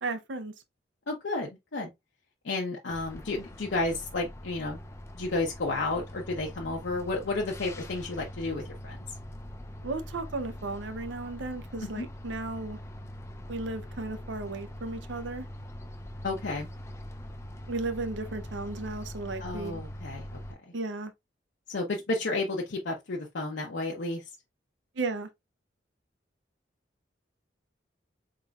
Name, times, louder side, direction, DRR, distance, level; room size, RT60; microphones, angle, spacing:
voice 1, 0.0-0.5 9.8-12.8 13.5-15.5 17.7-19.8 20.7-21.1 25.0-25.3, right 3 dB, 80° right, 0.6 m, -35 dB
voice 2, 1.1-1.9 2.4-4.8 5.1-9.0 12.0-12.1 16.2-16.7 19.4-20.3 21.7-24.2, left 2 dB, 80° left, 0.7 m, -32 dB
sound 1, 2.9-20.5, left 1 dB, 15° left, 0.4 m, -43 dB
4.1 x 3.8 x 2.3 m
head